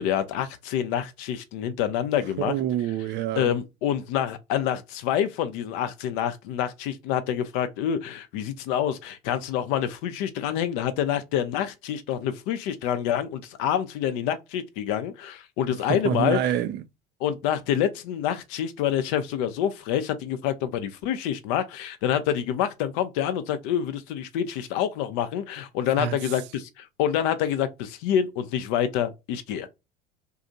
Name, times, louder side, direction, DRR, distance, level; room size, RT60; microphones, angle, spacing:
voice 1, 0.0-2.5 3.4-16.6 17.2-29.7, left 10 dB, 55° left, 0.6 m, -27 dB
voice 2, 2.4-3.5 15.9-16.8 26.0-26.2, right 10 dB, 40° right, 0.4 m, -27 dB
2.7 x 2.4 x 2.6 m
hypercardioid pair, 80°, 29 cm